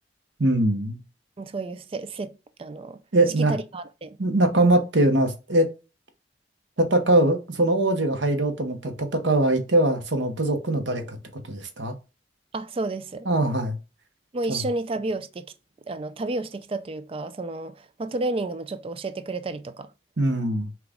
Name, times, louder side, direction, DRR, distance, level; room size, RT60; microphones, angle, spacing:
voice 1, 0.4-1.0 3.1-3.5 4.2-5.7 6.8-11.2 11.5-11.9 13.3-13.8 14.5-14.6 20.2-20.7, right 1 dB, 75° right, 0.9 m, -22 dB
voice 2, 1.4-3.0 3.4-4.2 12.5-13.3 14.3-15.4 15.9-19.9, right 2 dB, 30° right, 0.4 m, -31 dB
5.9 x 2.4 x 3.5 m
head